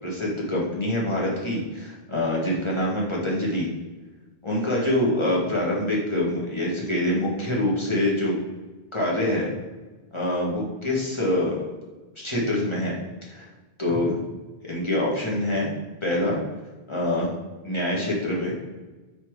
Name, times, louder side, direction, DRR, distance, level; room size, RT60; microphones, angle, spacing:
voice 1, 0.0-3.7 4.4-8.3 8.9-9.5 10.1-11.7 12.2-12.9 13.3-13.5 13.8-14.2 14.6-15.7 16.0-16.4 16.9-17.3 17.6-18.5, left 1 dB, 30° left, -4 dB, 1.7 m, -25 dB
5.0 x 4.3 x 4.7 m, 1.2 s
omnidirectional pair, 1.0 m